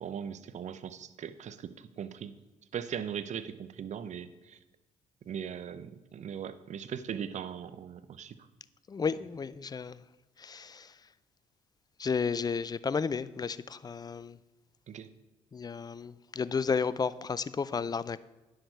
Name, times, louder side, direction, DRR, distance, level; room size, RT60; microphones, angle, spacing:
voice 1, 0.0-2.3 2.7-4.6 5.2-8.4 14.9-15.1, right 8 dB, 50° right, 0.6 m, -39 dB
voice 2, 8.9-10.0 10.4-10.9 12.0-14.4 15.5-18.2, left 5 dB, 25° left, 0.4 m, -32 dB
9.6 x 6.3 x 4.6 m
hypercardioid pair, 55°, 16 cm